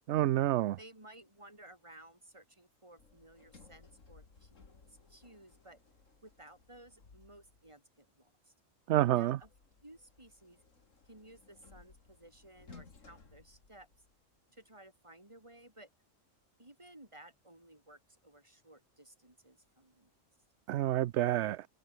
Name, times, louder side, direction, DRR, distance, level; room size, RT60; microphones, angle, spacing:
voice 1, 0.1-0.8 8.9-9.4 20.7-21.7, right 13 dB, 70° right, 0.8 m, -28 dB
voice 2, 0.8-4.5 4.9-5.8 6.2-8.5 9.1-9.5 9.8-10.6 11.1-13.9 14.5-15.9 16.6-20.1, right 1 dB, 25° right, 4.2 m, -57 dB
Sliding door, 3.0-7.8 9.4-14.4, left 4 dB, 85° left, 2.8 m, -60 dB
omnidirectional pair, 1.3 m